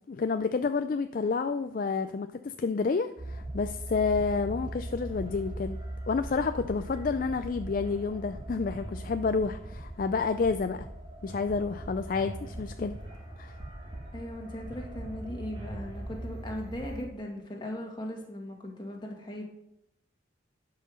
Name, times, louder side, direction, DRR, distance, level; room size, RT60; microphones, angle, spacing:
voice 1, 0.1-5.8 6.1-10.9 11.2-13.0 13.4-13.6, left 4 dB, 45° left, 10 dB, 0.4 m, -29 dB
sound 1, 3.2-17.0, right 1 dB, 25° right, 2.4 m, -40 dB
voice 2, 14.1-19.5, left 1 dB, 25° left, 0 dB, 1.9 m, -38 dB
11.5 x 5.7 x 6.4 m, 0.80 s
head